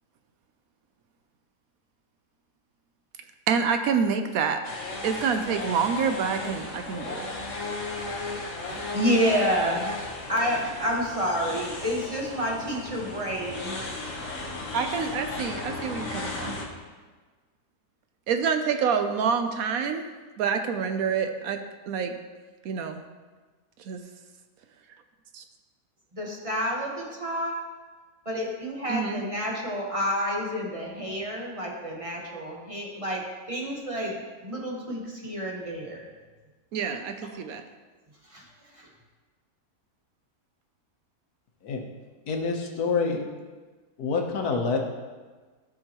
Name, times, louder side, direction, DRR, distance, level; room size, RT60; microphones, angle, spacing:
voice 1, 3.5-4.6 5.0-7.3 14.7-16.6 18.3-20.1 20.4-22.1 22.6-23.0 23.9-24.0 25.3-25.4 28.9-29.2 36.7-37.6, right 6 dB, 70° right, 7 dB, 1.0 m, -27 dB
sound 1, 4.6-16.7, left 2 dB, 55° left, 1.4 m, -35 dB
voice 2, 8.6-13.8 26.1-27.5 28.2-34.1 34.4-36.0 38.3-38.4 38.8-38.9, equal, 25° right, -2 dB, 1.2 m, -29 dB
voice 3, 42.3-43.2 44.0-44.8, left 4 dB, 80° left, 2 dB, 1.5 m, -26 dB
13.5 x 5.2 x 2.9 m, 1.3 s
omnidirectional pair, 1.6 m